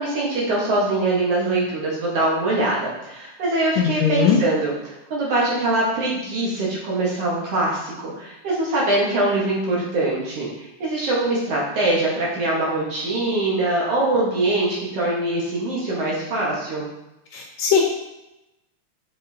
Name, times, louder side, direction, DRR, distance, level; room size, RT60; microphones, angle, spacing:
voice 1, 0.0-16.8, right 2 dB, 55° right, -6 dB, 2.2 m, -23 dB
voice 2, 3.8-4.4 17.3-17.8, left 7 dB, 75° left, 0 dB, 1.8 m, -19 dB
6.6 x 5.3 x 2.8 m, 0.92 s
omnidirectional pair, 3.6 m